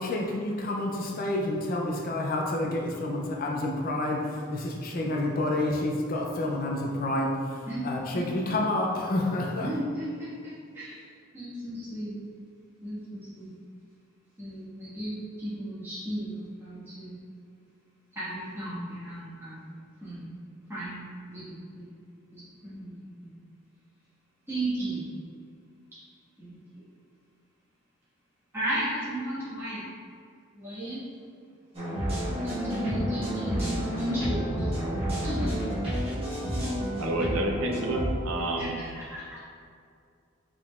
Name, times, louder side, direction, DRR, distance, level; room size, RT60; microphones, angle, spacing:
voice 1, 0.0-9.7, left 1 dB, 40° left, 0 dB, 0.4 m, -29 dB
voice 2, 9.6-11.0 11.3-12.2 12.8-13.5 14.4-17.2 18.1-19.7 20.0-20.3 20.7-21.9 22.3-22.9 23.2-23.3 24.5-25.1 26.4-26.6 28.5-29.8 30.5-31.0 32.4-34.7 35.2-35.7 38.5-39.4, right 1 dB, 10° right, -11 dB, 1.4 m, -34 dB
sound 1, 31.7-38.1, equal, 30° right, 1.1 m, -30 dB
voice 3, 37.0-38.8, right 1 dB, 80° right, 1 dB, 0.6 m, -29 dB
4.8 x 3.7 x 2.4 m, 2.3 s
head